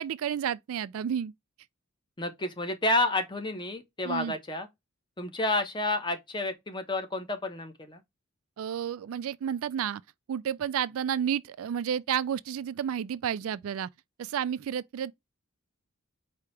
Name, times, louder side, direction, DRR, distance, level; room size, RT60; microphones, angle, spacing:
voice 1, 0.0-1.3 4.0-4.3 8.6-10.0 10.3-13.9 14.2-15.1, right 8 dB, 75° right, 0.3 m, -31 dB
voice 2, 2.2-4.7 5.2-8.0, left 2 dB, 20° left, 0.9 m, -30 dB
4.7 x 2.8 x 3.2 m
head